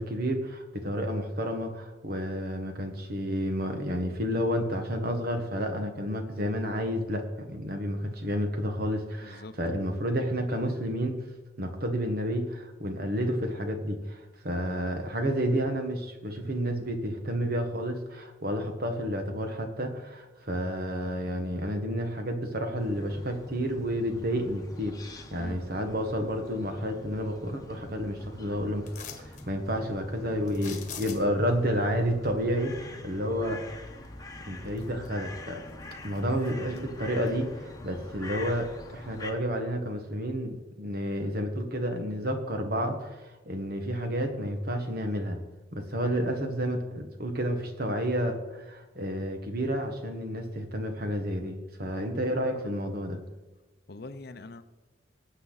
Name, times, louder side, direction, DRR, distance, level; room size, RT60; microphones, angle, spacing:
voice 1, 0.0-11.2 11.6-28.8 29.2-33.6 34.5-35.6 36.0-45.4 45.7-53.2, equal, 50° right, 5 dB, 1.6 m, -30 dB
voice 2, 9.2-9.6 25.3-25.6 36.6-36.8 46.1-46.3 53.9-54.6, left 2 dB, 55° left, 11 dB, 0.7 m, -44 dB
sound 1, 22.8-39.3, left 2 dB, 20° left, 1.1 m, -45 dB
sound 2, 28.9-29.5 30.5-31.5 34.0-34.1 34.6-35.3 35.7-36.8 37.3-37.4, left 8 dB, 40° left, 1.3 m, -43 dB
18.5 x 8.2 x 4.1 m, 1.1 s
head